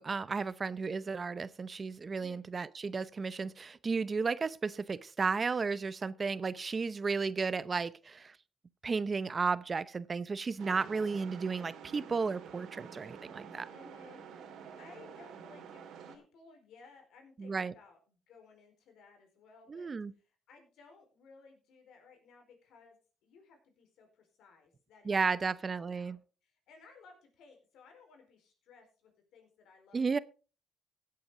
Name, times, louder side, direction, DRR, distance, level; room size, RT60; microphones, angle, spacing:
voice 1, 0.0-8.4 8.8-13.7 17.4-17.7 19.7-20.1 25.0-26.2 29.9-30.2, right 4 dB, 35° right, 0.6 m, -33 dB
sound 1, 10.6-16.2, right 7 dB, 80° right, 2.4 m, -49 dB
voice 2, 13.7-25.4 25.8-30.0, left 4 dB, 80° left, 4.3 m, -59 dB
16.5 x 8.5 x 3.8 m
cardioid pair, 90°, 0 cm